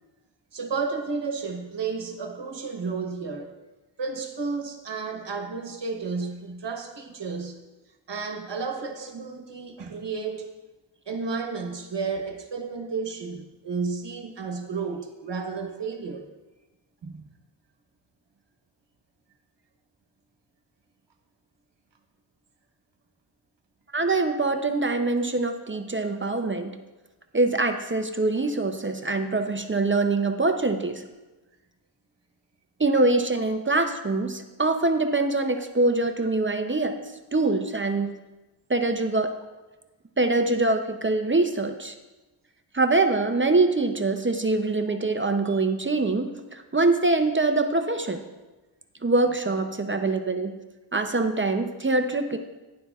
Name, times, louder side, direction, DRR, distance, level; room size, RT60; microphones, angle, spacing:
voice 1, 0.5-3.5 4.0-7.6 8.1-10.5 11.1-16.3 17.0-17.3, right 4 dB, 70° right, 4 dB, 1.2 m, -32 dB
voice 2, 23.9-26.7 27.3-31.0 32.8-36.9 37.3-38.1 38.7-39.3 40.2-41.9 42.7-48.2 49.0-50.5 50.9-52.4, right 2 dB, 25° right, 6 dB, 0.6 m, -24 dB
11.5 x 10.5 x 2.4 m, 1.1 s
wide cardioid pair, 70°, 44 cm